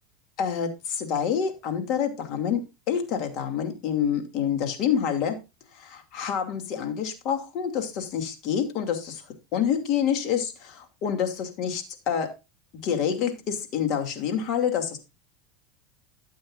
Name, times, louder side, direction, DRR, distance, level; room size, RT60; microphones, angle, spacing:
voice 1, 0.4-5.4 5.7-9.2 9.5-12.3 12.8-15.0, left 8 dB, 50° left, 5 dB, 2.5 m, -27 dB
12.5 x 8.5 x 2.5 m, 0.26 s
supercardioid pair, 125°, 0 cm